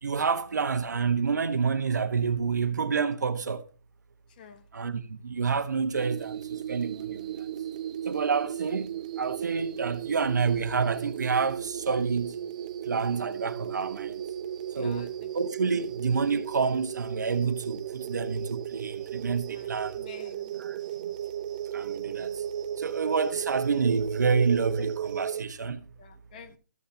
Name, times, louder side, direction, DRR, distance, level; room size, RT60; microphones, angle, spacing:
voice 1, 0.0-3.6 4.7-7.5 8.0-12.3 12.8-14.2 14.7-20.0 20.5-21.1 21.7-22.4 22.8-25.8, right 5 dB, 70° right, 1.5 m, -28 dB
sound 1, 5.9-25.4, right 10 dB, 25° right, 0.6 m, -35 dB
voice 2, 14.8-15.1 19.5-20.5 24.8-24.9 26.0-26.6, left 7 dB, 25° left, 1.2 m, -47 dB
15.5 x 13.5 x 2.9 m
hypercardioid pair, 170°, 10 cm